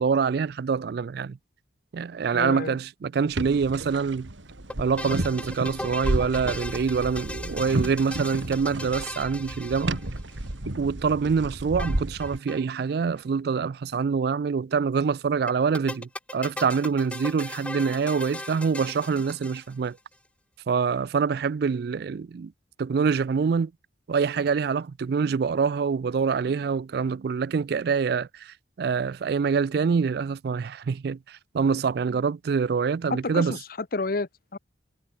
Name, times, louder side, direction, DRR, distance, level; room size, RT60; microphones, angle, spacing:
voice 1, 0.0-1.4 1.9-4.3 4.8-10.0 10.8-20.0 20.7-22.5 22.8-23.7 24.1-33.6, right 5 dB, 55° right, 0.3 m, -25 dB
voice 2, 2.3-2.8 33.1-34.6, left 3 dB, 50° left, 0.8 m, -30 dB
sound 1, 3.3-12.4, right 1 dB, 90° right, 2.2 m, -32 dB
sound 2, 4.7-10.5 11.8-12.6 12.9-13.0 13.2-13.3 15.5-20.0, left 1 dB, 5° left, 0.6 m, -38 dB
head